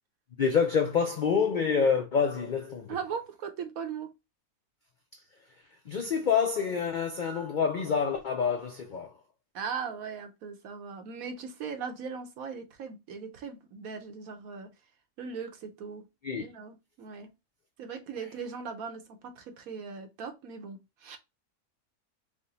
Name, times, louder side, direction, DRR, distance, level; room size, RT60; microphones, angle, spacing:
voice 1, 0.4-2.9 5.9-9.1 16.2-16.4, left 6 dB, 80° left, 0.4 m, -27 dB
voice 2, 2.9-4.1 9.5-14.7 15.2-16.1 16.4-17.3 17.8-21.2, right 6 dB, 75° right, 1.3 m, -39 dB
4.8 x 2.1 x 4.0 m
omnidirectional pair, 1.5 m